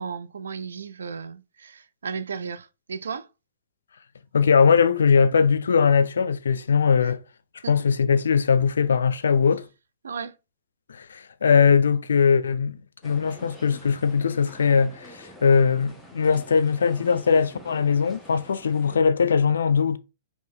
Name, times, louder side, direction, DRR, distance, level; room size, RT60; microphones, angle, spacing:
voice 1, 0.0-3.3 7.0-7.1 7.6-7.8 10.0-10.4, right 6 dB, 90° right, 0.4 m, -35 dB
voice 2, 4.3-7.2 7.7-9.7 10.9-12.8 13.0-20.0, left 6 dB, 90° left, 0.4 m, -20 dB
sound 1, 13.0-19.0, equal, ahead, 1.0 m, -47 dB
4.2 x 2.8 x 3.6 m
hypercardioid pair, 130°, 0 cm